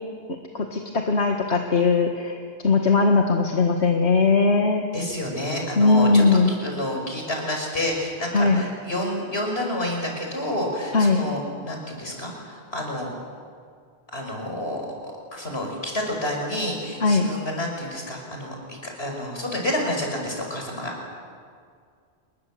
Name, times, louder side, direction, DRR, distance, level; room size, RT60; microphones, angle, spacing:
voice 1, 0.5-4.8 5.8-6.5 8.3-8.6 10.9-11.3 17.0-17.3, left 4 dB, 90° left, 3 dB, 2.0 m, -19 dB
voice 2, 4.9-13.1 14.1-14.8 15.3-20.9, left 1 dB, 70° left, 0 dB, 6.1 m, -29 dB
28.5 x 21.5 x 7.8 m, 2.1 s
omnidirectional pair, 1.1 m